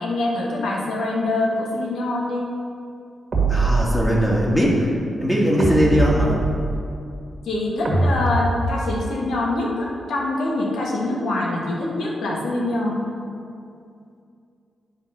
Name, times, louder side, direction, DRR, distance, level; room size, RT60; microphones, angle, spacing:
voice 1, 0.0-2.4 7.4-13.0, left 2 dB, 90° left, -2 dB, 1.4 m, -24 dB
sound 1, 3.3-4.4 5.6-6.9 7.8-9.1, right 2 dB, 45° right, 1.7 m, -22 dB
voice 2, 3.5-4.9 5.2-6.4, equal, 10° left, -4 dB, 1.8 m, -19 dB
10.0 x 4.0 x 5.5 m, 2.4 s
cardioid pair, 90°, 0 cm